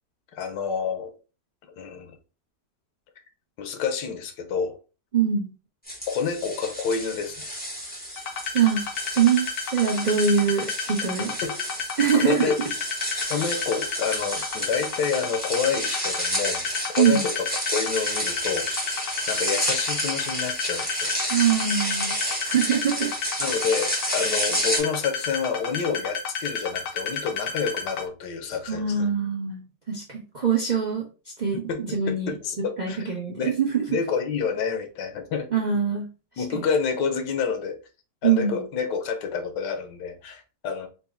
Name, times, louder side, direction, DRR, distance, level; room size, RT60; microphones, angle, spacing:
voice 1, 0.3-1.1 1.7-2.2 3.6-4.8 6.1-7.5 11.4-11.6 12.2-12.6 13.3-16.7 17.0-17.5 17.7-18.9 19.3-21.1 23.4-29.1 31.7-33.0 33.3-33.5 33.9-35.5 36.4-37.8 38.2-40.9, left 6 dB, 85° left, 1.3 m, -28 dB
voice 2, 5.1-5.5 8.5-8.8 9.2-11.3 12.0-12.5 13.2-13.3 17.0-17.2 21.3-22.2 22.4-23.2 28.7-31.0 31.4-32.3 32.8-33.8 35.5-36.1 36.4-36.6 38.2-38.6, right 7 dB, 55° right, 0.5 m, -23 dB
sound 1, 5.9-24.8, equal, 5° left, 0.9 m, -31 dB
sound 2, 8.2-28.1, left 5 dB, 65° left, 1.2 m, -31 dB
4.0 x 2.1 x 3.3 m
omnidirectional pair, 1.8 m